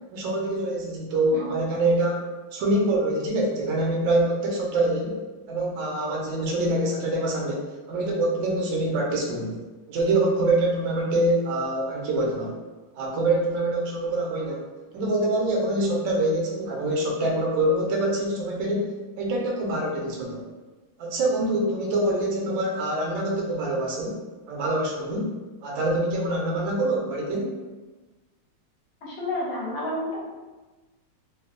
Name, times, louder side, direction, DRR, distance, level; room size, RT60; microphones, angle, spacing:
voice 1, 0.1-2.2 2.5-5.2 5.5-9.6 9.9-12.6 13.0-14.7 14.9-20.4 21.0-24.2 24.5-25.3 25.6-27.5, right 1 dB, 70° right, -1 dB, 1.3 m, -25 dB
voice 2, 29.0-30.2, left 1 dB, 70° left, -5 dB, 1.4 m, -30 dB
3.4 x 2.3 x 2.5 m, 1.2 s
omnidirectional pair, 2.3 m